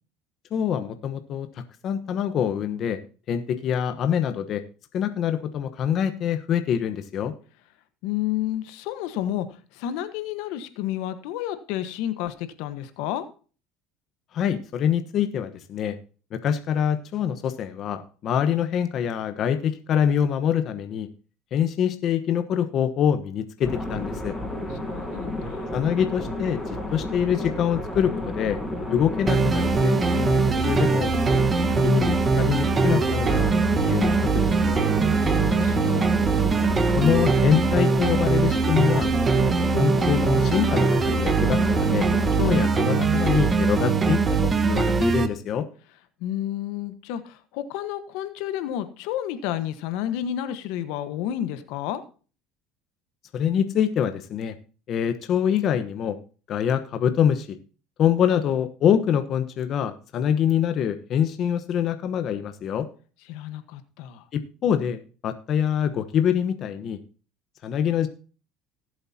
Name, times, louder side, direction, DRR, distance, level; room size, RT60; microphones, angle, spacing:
voice 1, 0.5-3.0 3.3-4.6 4.9-7.3 14.3-16.0 16.3-21.1 21.5-24.3 25.7-28.6 28.9-31.1 31.8-34.9 37.0-39.1 39.7-42.1 42.4-45.7 53.3-54.6 54.9-56.2 56.5-57.6 58.0-62.9 64.3-67.0 67.6-68.1, left 9 dB, 50° left, 9 dB, 1.1 m, -25 dB
voice 2, 8.0-13.3 24.8-25.7 35.2-36.0 46.2-52.0 63.3-64.2, left 11 dB, 75° left, 10 dB, 1.3 m, -31 dB
sound 1, 23.6-42.7, left 1 dB, 5° left, 5.5 m, -32 dB
sound 2, 29.3-45.3, right 4 dB, 25° right, 1.3 m, -22 dB
18.0 x 7.9 x 2.9 m, 0.37 s
supercardioid pair, 110°, 0 cm